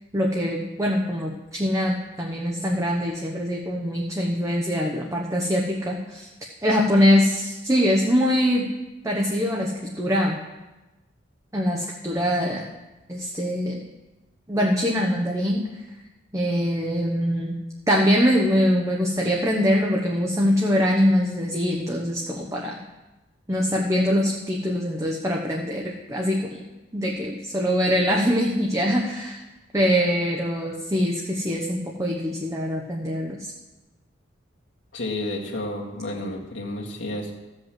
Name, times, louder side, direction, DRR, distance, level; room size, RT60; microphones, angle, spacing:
voice 1, 0.1-6.3 6.6-8.6 9.0-10.4 11.5-12.7 13.1-13.8 14.5-15.8 16.3-17.5 17.9-22.8 23.5-26.6 26.9-29.4 29.7-33.5, equal, 15° right, 0 dB, 1.0 m, -23 dB
voice 2, 34.9-37.3, left 1 dB, 80° left, -2 dB, 1.9 m, -31 dB
14.0 x 5.4 x 7.5 m, 1.1 s
head